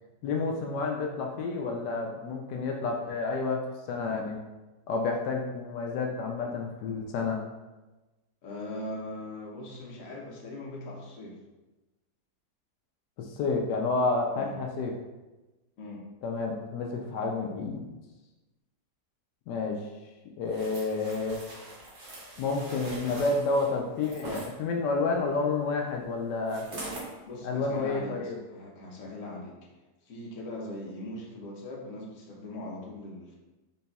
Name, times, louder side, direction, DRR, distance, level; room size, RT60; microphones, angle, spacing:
voice 1, 0.2-4.4 4.9-7.4 13.2-14.9 16.2-17.9 19.5-19.8 20.4-21.4 22.4-26.7 27.4-28.4, left 3 dB, 85° left, 1 dB, 1.2 m, -30 dB
voice 2, 8.4-11.4 14.3-14.6 15.8-16.1 27.2-29.5 30.0-33.4, left 1 dB, 60° left, -2 dB, 1.2 m, -40 dB
sound 1, 20.5-24.5 26.5-27.1 27.6-27.8, right 2 dB, 45° right, 0.7 m, -42 dB
4.1 x 3.9 x 2.3 m, 1.1 s
omnidirectional pair, 1.8 m